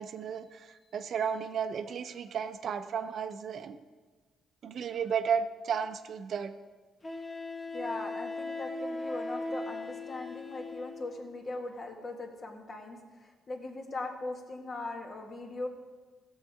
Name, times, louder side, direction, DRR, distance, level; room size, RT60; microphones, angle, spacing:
voice 1, 0.0-3.8 4.6-6.5, right 7 dB, 60° right, 10 dB, 0.7 m, -33 dB
Wind instrument woodwind instrument, 5.7-5.8 7.0-11.1, left 2 dB, 25° left, 1.6 m, -38 dB
voice 2, 7.7-15.7, left 2 dB, 45° left, 2 dB, 1.8 m, -40 dB
15.5 x 7.4 x 3.7 m, 1.4 s
cardioid pair, 90°, 0 cm